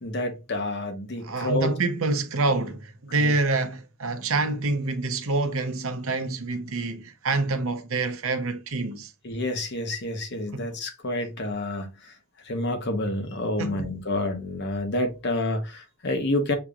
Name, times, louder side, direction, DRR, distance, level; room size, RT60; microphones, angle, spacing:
voice 1, 0.0-1.7 3.2-3.6 9.2-12.1 12.4-16.6, left 1 dB, 50° left, 1.0 m, -29 dB
voice 2, 1.2-9.1 10.5-10.6 13.6-13.9, right 3 dB, 65° right, 0.8 m, -27 dB
6.8 x 3.0 x 2.4 m
head